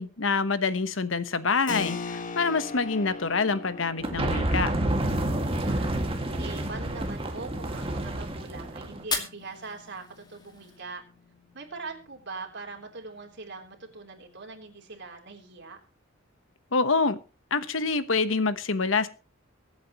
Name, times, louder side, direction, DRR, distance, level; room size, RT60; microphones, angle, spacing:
voice 1, 0.0-4.7 16.7-17.2 17.5-19.1, left 4 dB, 75° left, 13 dB, 1.1 m, -26 dB
Keyboard (musical), 1.7-12.0, left 4 dB, 40° left, 1.2 m, -42 dB
sound 1, 4.0-9.0, right 1 dB, 30° right, 2.1 m, -29 dB
voice 2, 5.2-11.0 11.5-15.8, right 4 dB, 60° right, 3 dB, 3.6 m, -42 dB
Fire, 8.9-11.0, left 4 dB, 20° left, 2.3 m, -36 dB
23.5 x 8.6 x 3.0 m, 0.34 s
head